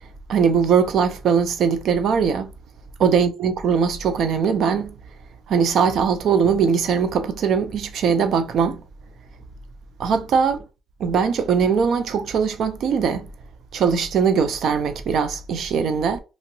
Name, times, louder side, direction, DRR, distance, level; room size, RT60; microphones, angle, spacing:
voice 1, 0.3-2.5 3.0-4.9 5.5-8.8 10.0-10.6 11.0-13.3 13.7-16.2, right 6 dB, 70° right, 0.5 m, -20 dB
3.0 x 2.6 x 2.7 m
cardioid pair, 90°, 0 cm